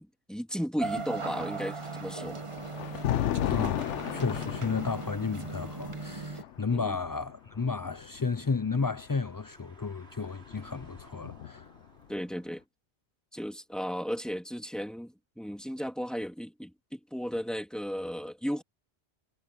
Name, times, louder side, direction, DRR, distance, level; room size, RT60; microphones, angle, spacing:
voice 1, 0.0-2.4 6.7-7.0 12.1-12.6 13.3-18.6, equal, ahead, 2.2 m, -35 dB
sound 1, 0.8-6.4, right 4 dB, 30° right, 1.0 m, -38 dB
Thunder, 1.8-9.0 10.1-11.8, left 12 dB, 85° left, 1.0 m, -35 dB
voice 2, 3.5-11.7, left 4 dB, 35° left, 0.3 m, -33 dB
sound 2, 4.7-12.7, right 2 dB, 60° right, 5.4 m, -60 dB
omnidirectional pair, 1.2 m